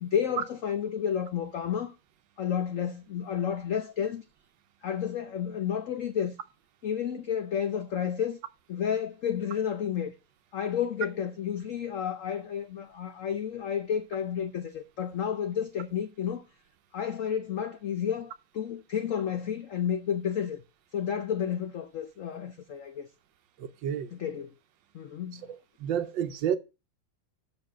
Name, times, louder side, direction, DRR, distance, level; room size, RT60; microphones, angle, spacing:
voice 1, 0.0-1.9 2.4-4.2 4.8-6.4 6.8-8.4 8.7-10.1 10.5-16.4 16.9-20.6 20.9-23.1 24.1-24.5 24.9-25.5, left 8 dB, 85° left, 0.7 m, -31 dB
voice 2, 23.6-24.1 25.3-26.6, right 9 dB, 70° right, 1.4 m, -31 dB
7.0 x 6.4 x 6.0 m
omnidirectional pair, 2.2 m